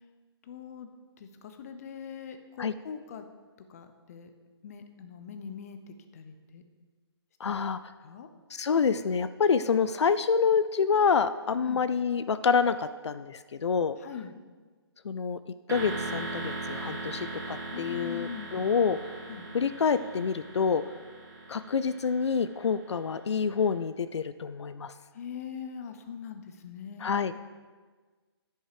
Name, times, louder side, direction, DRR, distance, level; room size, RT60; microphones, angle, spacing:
voice 1, 0.4-0.9 1.2-3.2 3.7-4.3 4.6-6.6 7.4-7.6 8.0-8.3 11.6-11.8 14.0-14.4 17.7-18.6 19.3-19.5 25.1-27.4, left 7 dB, 35° left, 8 dB, 0.7 m, -42 dB
voice 2, 7.4-7.8 8.5-14.0 15.0-15.4 15.7-19.0 19.5-20.8 21.5-24.9 27.0-27.3, left 6 dB, 85° left, 13 dB, 0.4 m, -27 dB
sound 1, 15.7-23.5, right 2 dB, 45° right, 2.4 m, -39 dB
10.0 x 5.5 x 4.9 m, 1.4 s
hypercardioid pair, 155°, 14 cm